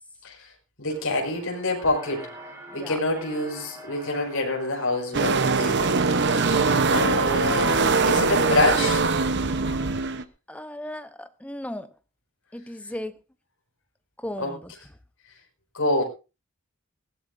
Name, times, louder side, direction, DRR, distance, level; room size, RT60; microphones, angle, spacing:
voice 1, 0.8-2.3 2.7-6.6 6.9-9.1 14.4-14.5 15.7-16.0, left 2 dB, 65° left, 1 dB, 5.5 m, -26 dB
sound 1, 0.9-9.2, equal, 15° right, 4.3 m, -45 dB
sound 2, 5.1-10.2, right 4 dB, 50° right, 0.9 m, -22 dB
voice 2, 10.5-11.9 12.5-13.2 14.2-14.7, left 1 dB, 5° left, 10 dB, 0.8 m, -36 dB
19.5 x 15.5 x 2.6 m, 0.32 s
head